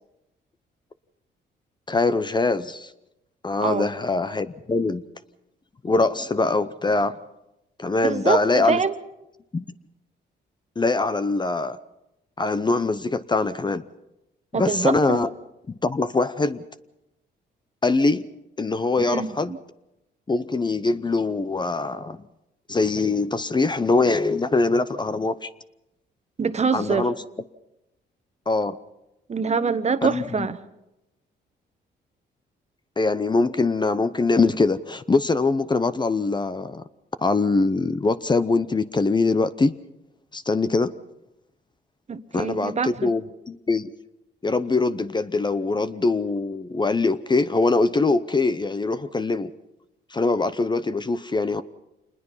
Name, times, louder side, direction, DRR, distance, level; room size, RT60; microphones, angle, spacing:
voice 1, 1.9-2.9 3.4-5.0 5.8-7.2 7.8-8.8 9.5-9.6 10.8-11.8 12.4-13.8 14.5-15.3 15.7-16.6 17.8-18.2 18.6-19.5 20.3-22.2 22.7-25.5 26.7-27.1 28.5-28.8 30.0-30.5 33.0-36.8 37.2-39.7 40.3-40.9 42.3-43.2 43.5-43.9 44.4-49.5 50.1-51.6, left 3 dB, 25° left, 13 dB, 0.7 m, -23 dB
voice 2, 3.6-3.9 8.0-9.0 14.5-15.2 19.0-19.6 26.4-27.1 29.3-30.6 42.1-43.1, right 5 dB, 35° right, 11 dB, 1.2 m, -25 dB
27.0 x 20.5 x 5.7 m, 0.93 s
cardioid pair, 90°, 19 cm